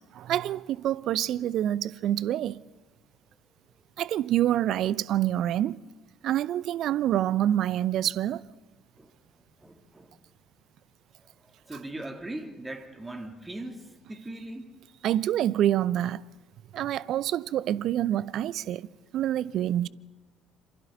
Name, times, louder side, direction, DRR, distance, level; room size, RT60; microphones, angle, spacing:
voice 1, 0.1-2.6 4.0-5.8 6.2-8.4 15.0-16.2 16.7-18.9 19.1-19.9, right 12 dB, 55° right, 0.6 m, -26 dB
voice 2, 9.0-10.1 11.4-14.8, right 1 dB, 15° right, 2.9 m, -40 dB
28.0 x 27.0 x 4.0 m
figure-of-eight pair, 50°, 0 cm